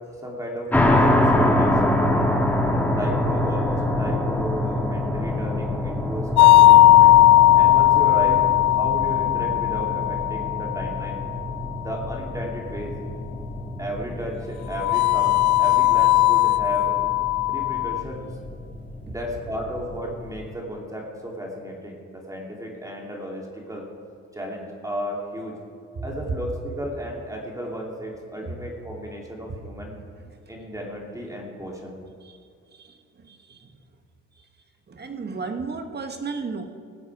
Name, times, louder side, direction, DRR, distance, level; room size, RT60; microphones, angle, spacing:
voice 1, 0.2-2.0 2.9-7.1 7.5-8.4 8.7-11.2 11.8-12.9 13.8-17.0 17.5-18.2 19.0-23.9 24.3-25.5 26.0-29.9 30.5-32.0, equal, 10° right, -1 dB, 2.5 m, -34 dB
sound 1, 0.7-20.4, left 1 dB, 5° left, 1.7 m, -26 dB
sound 2, 6.4-11.3 14.8-18.0, left 15 dB, 70° left, 0.4 m, -17 dB
voice 2, 26.0-26.3 28.4-28.6 32.2-32.4 32.7-33.7 34.9-36.6, right 4 dB, 35° right, 6 dB, 1.3 m, -33 dB
19.0 x 7.9 x 4.7 m, 2.2 s
cardioid pair, 90°, 30 cm